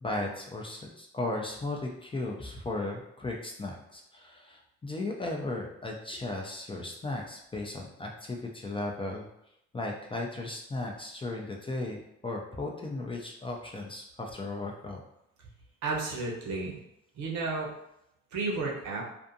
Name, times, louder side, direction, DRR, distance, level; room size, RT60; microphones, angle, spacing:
voice 1, 0.0-9.3 9.7-15.0, left 2 dB, 20° left, 0 dB, 0.4 m, -36 dB
voice 2, 15.8-16.8 17.2-17.7 18.3-19.0, right 3 dB, 75° right, -1 dB, 0.8 m, -32 dB
2.5 x 2.4 x 2.5 m, 0.81 s
cardioid pair, 90°, 30 cm